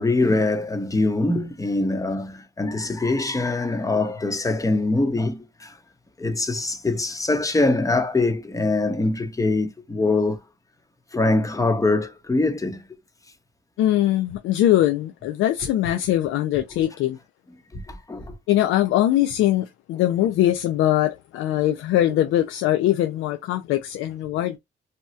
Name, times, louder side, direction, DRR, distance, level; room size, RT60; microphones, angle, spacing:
voice 1, 0.0-5.8 6.2-10.4 11.1-12.8 17.7-18.4, left 2 dB, 15° left, 0.8 m, -23 dB
voice 2, 13.8-17.2 18.5-24.6, left 13 dB, 90° left, 0.4 m, -21 dB
2.8 x 2.3 x 3.0 m
cardioid pair, 90°, 20 cm